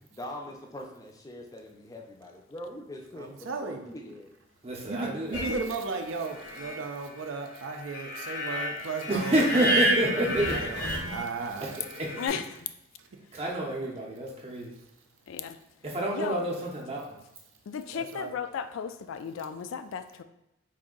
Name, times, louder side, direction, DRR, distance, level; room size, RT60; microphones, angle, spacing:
voice 1, 0.1-4.3 10.1-10.2 17.9-18.0, left 1 dB, 15° left, 0 dB, 0.4 m, -42 dB
voice 2, 3.2-3.8 4.9-11.8 17.9-18.3, right 4 dB, 75° right, 5 dB, 0.5 m, -35 dB
voice 3, 4.6-5.5 9.1-10.5 12.0-12.1 13.3-14.7 15.8-17.2, right 1 dB, 30° right, -2 dB, 0.6 m, -28 dB
sound 1, 5.3-12.3, right 1 dB, 60° left, 0.7 m, -32 dB
voice 4, 12.2-12.7 15.3-15.6 16.1-16.4 17.7-20.2, left 7 dB, 80° left, 10 dB, 0.3 m, -35 dB
4.1 x 2.6 x 3.7 m, 0.86 s
head